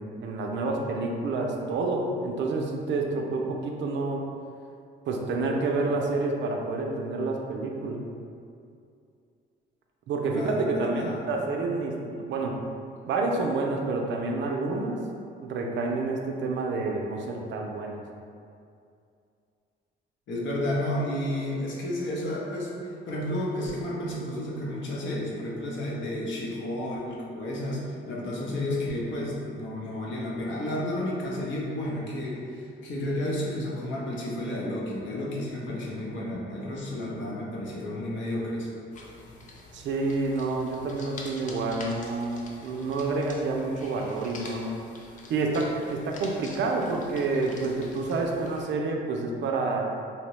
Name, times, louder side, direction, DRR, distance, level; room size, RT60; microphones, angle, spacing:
voice 1, 0.0-4.2 5.1-8.0 10.1-12.5 13.1-15.0 15.4-18.0 39.7-44.7 45.3-49.9, right 3 dB, 70° right, 1 dB, 0.4 m, -28 dB
voice 2, 10.3-11.2 20.3-38.7, left 1 dB, 70° left, -4 dB, 0.7 m, -31 dB
sound 1, 38.9-48.6, left 2 dB, 40° left, 0.5 m, -46 dB
2.8 x 2.1 x 3.0 m, 2.4 s
cardioid pair, 90°, 20 cm